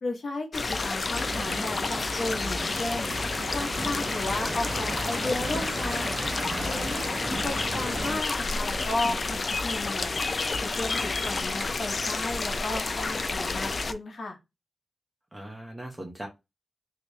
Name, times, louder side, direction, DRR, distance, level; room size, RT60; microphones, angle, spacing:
voice 1, 0.0-3.1 3.5-6.2 6.6-7.1 7.4-10.2 10.6-14.4, left 2 dB, 65° left, 2 dB, 0.9 m, -34 dB
sound 1, 0.5-13.9, left 3 dB, 45° left, 0.4 m, -30 dB
sound 2, 1.1-8.2, right 2 dB, 45° right, 0.5 m, -36 dB
sound 3, 2.9-9.8, left 1 dB, 20° left, 0.9 m, -44 dB
voice 2, 6.5-7.1 15.3-16.3, right 1 dB, 15° right, 2 dB, 0.8 m, -40 dB
2.9 x 2.9 x 3.2 m, 0.23 s
wide cardioid pair, 115°, 0 cm